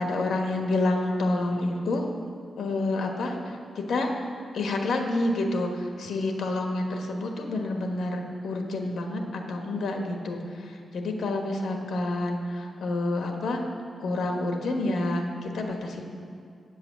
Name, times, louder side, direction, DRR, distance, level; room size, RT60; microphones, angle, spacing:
voice 1, 0.0-2.0 2.6-4.3 4.5-13.6 14.0-16.1, left 2 dB, 80° left, 3 dB, 1.3 m, -28 dB
8.5 x 7.9 x 7.1 m, 2.3 s
wide cardioid pair, 125°, 0 cm